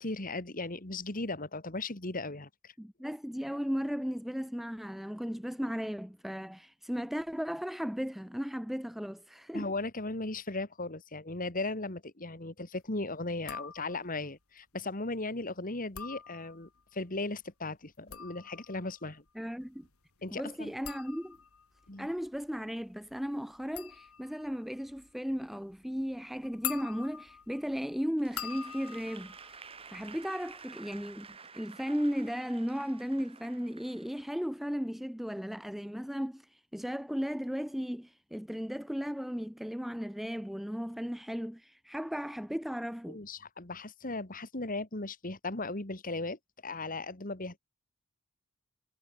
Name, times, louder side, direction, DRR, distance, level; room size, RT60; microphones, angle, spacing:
voice 1, 0.0-2.7 9.5-19.2 20.2-20.7 21.9-22.1 43.1-47.6, left 2 dB, 40° left, 2.2 m, -37 dB
voice 2, 2.8-9.7 19.4-19.9 20.3-21.4 22.0-31.3 31.5-43.2, equal, ahead, 0.3 m, -36 dB
sound 1, 13.4-14.2 15.8-16.8 17.8-30.5 30.8-31.4, left 9 dB, 85° left, 3.4 m, -45 dB
Applause / Crowd, 28.2-34.4, right 5 dB, 25° right, 1.7 m, -51 dB
head